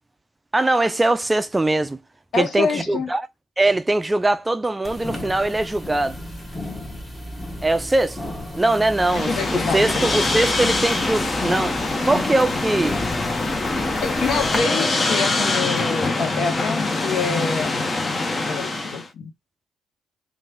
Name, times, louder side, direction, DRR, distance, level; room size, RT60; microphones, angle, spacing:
voice 1, 0.5-2.0 2.4-3.2 3.6-6.2 7.6-8.2 8.6-11.8 12.0-13.0, right 2 dB, 20° right, 0.4 m, -21 dB
voice 2, 2.3-3.1 9.1-10.1 14.0-17.9 18.5-19.3, left 5 dB, 65° left, 0.9 m, -26 dB
sound 1, 4.8-14.6, left 1 dB, 15° left, 1.3 m, -34 dB
sound 2, 8.9-19.1, left 2 dB, 35° left, 0.8 m, -24 dB
3.1 x 2.6 x 4.4 m
hypercardioid pair, 50°, 0 cm